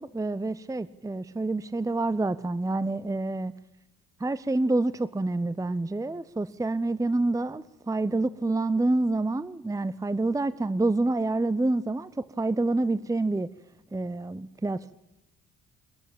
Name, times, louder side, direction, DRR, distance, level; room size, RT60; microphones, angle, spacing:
voice 1, 0.0-3.5 4.2-12.1 12.4-13.5 13.9-14.9, right 2 dB, 10° right, 18 dB, 0.8 m, -27 dB
23.0 x 14.0 x 8.7 m, 0.91 s
hypercardioid pair, 45°, 39 cm